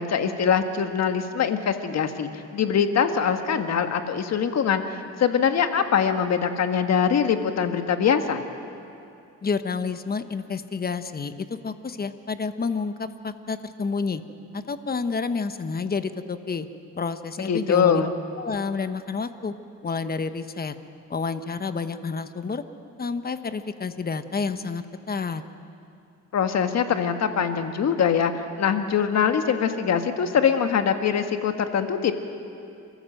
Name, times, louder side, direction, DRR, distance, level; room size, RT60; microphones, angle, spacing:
voice 1, 0.0-8.4 17.4-18.1 26.3-32.1, left 7 dB, 60° left, 7 dB, 1.6 m, -23 dB
voice 2, 9.4-11.3 11.6-14.2 14.5-16.7 17.0-18.0 18.4-19.5 19.8-20.7 21.1-22.6 23.0-25.4, left 4 dB, 30° left, 10 dB, 1.1 m, -29 dB
29.0 x 14.0 x 7.9 m, 2.6 s
cardioid pair, 90°, 30 cm